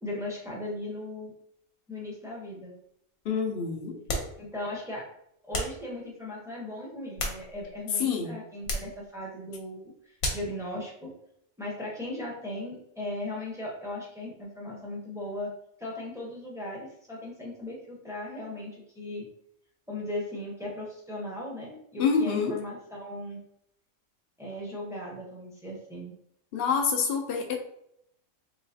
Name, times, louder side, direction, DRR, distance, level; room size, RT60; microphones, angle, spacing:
voice 1, 0.0-1.3 1.9-2.7 4.4-5.1 5.4-11.1 11.6-15.5 15.8-19.2 19.9-23.4 24.4-26.2, left 1 dB, 5° right, -4 dB, 0.7 m, -37 dB
voice 2, 3.2-4.0 8.0-8.4 22.0-22.6 26.5-27.5, left 5 dB, 55° left, 2 dB, 0.7 m, -27 dB
sound 1, 4.1-4.4 5.5-5.8 6.9-7.8 8.6-9.0 10.2-10.6, left 1 dB, 75° left, 1.3 m, -32 dB
3.9 x 3.0 x 2.7 m, 0.75 s
omnidirectional pair, 1.5 m